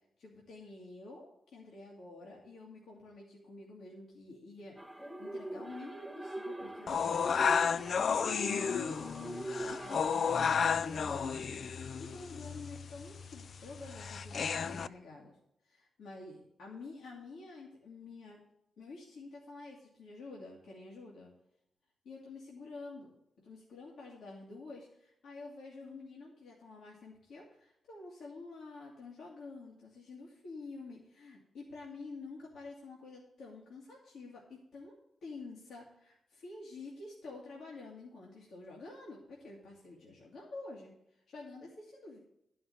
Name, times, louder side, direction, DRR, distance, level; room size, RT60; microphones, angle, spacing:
voice 1, 0.2-15.4 15.6-18.4 18.8-21.3 22.0-23.1 23.4-35.0 35.2-42.2, left 3 dB, 80° left, -3 dB, 2.2 m, -49 dB
sound 1, 4.8-10.3, right 1 dB, ahead, 0.8 m, -43 dB
sound 2, 6.9-14.9, left 6 dB, 55° left, 0.4 m, -32 dB
12.0 x 5.5 x 6.9 m, 0.80 s
wide cardioid pair, 140°, 0 cm